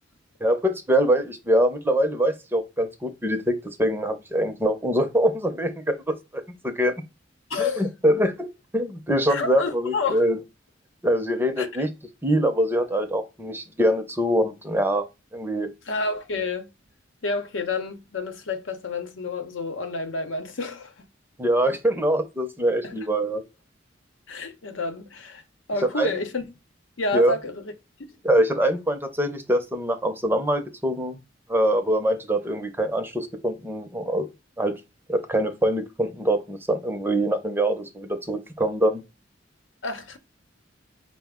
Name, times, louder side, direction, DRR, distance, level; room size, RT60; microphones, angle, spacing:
voice 1, 0.4-6.9 7.6-10.4 11.0-11.9 12.2-15.1 15.3-15.7 21.4-23.4 25.9-26.1 27.1-27.3 28.2-31.2 31.5-34.3 34.6-34.8 35.1-39.0, equal, 10° right, 0.5 m, -24 dB
voice 2, 7.5-7.8 9.3-10.2 11.6-11.7 15.9-16.7 17.2-21.1 22.8-23.0 24.3-25.4 25.7-26.4 27.0-27.7 39.8-40.2, left 3 dB, 85° left, 0.8 m, -29 dB
4.9 x 2.0 x 3.5 m
head